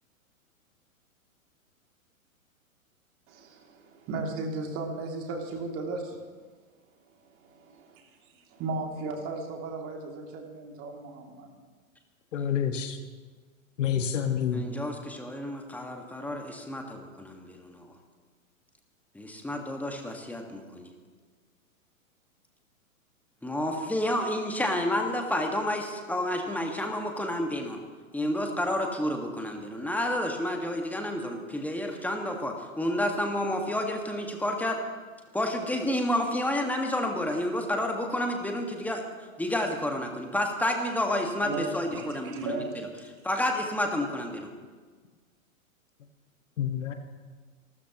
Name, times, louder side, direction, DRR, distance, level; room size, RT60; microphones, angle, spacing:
voice 1, 3.3-6.2 7.4-7.8 8.5-11.5 41.4-42.9, right 3 dB, 30° right, 2 dB, 2.7 m, -35 dB
voice 2, 12.3-13.0 13.8-14.7 46.6-46.9, left 8 dB, 60° left, 6 dB, 1.6 m, -28 dB
voice 3, 14.5-17.9 19.1-20.9 23.4-27.8 28.1-34.8 35.3-39.0 39.4-42.6 43.2-44.5, left 1 dB, 5° left, 2 dB, 1.7 m, -30 dB
29.0 x 13.0 x 3.0 m, 1.4 s
figure-of-eight pair, 110°, 41 cm